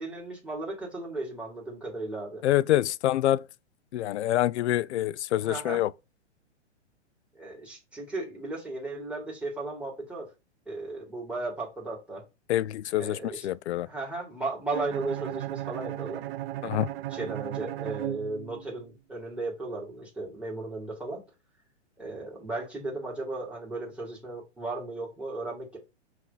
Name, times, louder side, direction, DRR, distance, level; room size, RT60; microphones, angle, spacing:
voice 1, 0.0-2.4 5.4-5.8 7.3-10.3 10.7-12.2 13.0-13.5 13.9-16.2 17.1-21.2 22.0-25.8, right 2 dB, 5° right, 2.1 m, -35 dB
voice 2, 2.4-3.4 3.9-5.9 12.5-13.9 16.6-16.9, left 13 dB, 70° left, 0.5 m, -26 dB
Bowed string instrument, 14.7-18.8, right 15 dB, 55° right, 0.4 m, -36 dB
5.8 x 3.0 x 5.6 m
hypercardioid pair, 130°, 35 cm